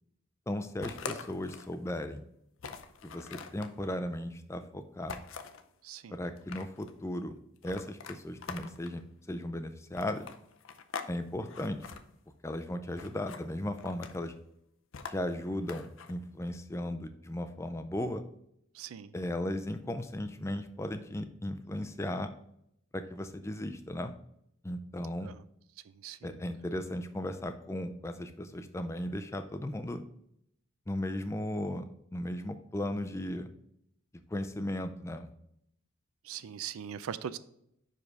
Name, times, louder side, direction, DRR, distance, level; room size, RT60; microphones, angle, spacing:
voice 1, 0.5-2.2 3.0-5.2 6.1-7.4 7.6-9.0 9.3-10.3 11.1-11.9 12.4-14.3 15.1-18.2 19.1-22.3 22.9-24.2 24.6-25.3 26.2-30.0 30.9-31.8 32.1-33.5 34.3-35.3, left 1 dB, 15° left, 8 dB, 0.4 m, -36 dB
sound 1, 0.8-1.8 2.2-2.3 2.6-3.7 5.1-5.6 6.2-6.9 7.6-9.0 9.9-11.1 11.4-12.0 13.0-13.4 13.8-14.3 14.9-16.1, left 5 dB, 70° left, 0.6 m, -43 dB
voice 2, 5.8-6.2 18.7-19.1 25.2-25.4 26.0-26.4 36.2-37.4, right 8 dB, 80° right, 15 dB, 0.4 m, -40 dB
5.5 x 5.0 x 4.6 m, 0.75 s
head